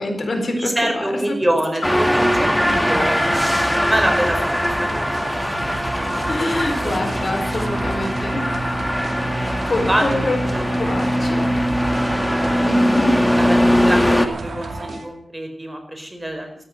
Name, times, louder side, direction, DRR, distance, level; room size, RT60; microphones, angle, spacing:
voice 1, 0.0-1.6 2.5-3.1 6.3-8.7 9.6-11.6 12.6-13.5, left 1 dB, 60° left, 5 dB, 4.3 m, -26 dB
voice 2, 0.5-3.4 3.7-5.0 5.5-5.6 6.0-7.0 9.9-10.0 10.5-11.0 13.4-16.5, right 1 dB, 20° right, 6 dB, 4.7 m, -26 dB
sound 1, 1.8-14.3, equal, 5° left, 1.8 m, -20 dB
sound 2, 2.2-15.1, right 3 dB, 75° right, 2.4 m, -32 dB
sound 3, 7.3-8.3 10.8-11.9, left 2 dB, 35° left, 3.3 m, -40 dB
14.0 x 12.5 x 7.8 m, 0.65 s
cardioid pair, 55°, 0 cm